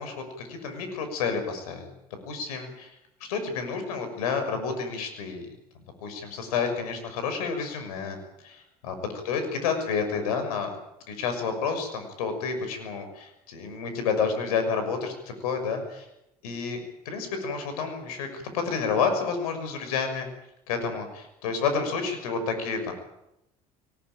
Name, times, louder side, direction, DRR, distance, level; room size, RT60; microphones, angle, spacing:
voice 1, 0.0-1.9 2.2-3.0 3.3-5.5 6.0-8.2 8.4-8.9 9.2-10.7 11.1-16.1 16.4-16.8 17.0-20.3 20.7-22.9, left 5 dB, 80° left, 7 dB, 6.2 m, -30 dB
23.0 x 20.0 x 9.0 m, 0.84 s
hypercardioid pair, 70°, 19 cm